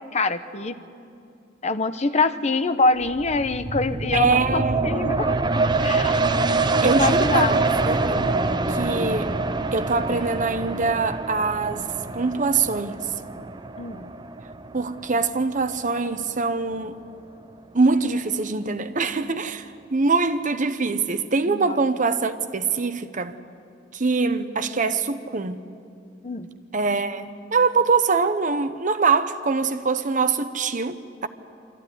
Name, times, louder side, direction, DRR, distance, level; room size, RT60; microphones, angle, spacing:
voice 1, 0.1-0.7 1.6-5.3 5.8-6.2 6.9-7.5 13.8-14.1 21.4-21.8 26.2-26.5, left 3 dB, 35° left, 0.8 m, -24 dB
sound 1, 3.0-16.3 16.7-16.8, right 3 dB, 25° right, 0.6 m, -25 dB
voice 2, 4.1-5.1 6.8-7.6 7.8-8.4 8.7-9.3 9.7-11.9 12.1-13.0 14.7-17.0 17.7-23.3 23.9-25.6 26.7-31.3, right 4 dB, 45° right, 0.9 m, -23 dB
24.0 x 14.5 x 9.8 m
head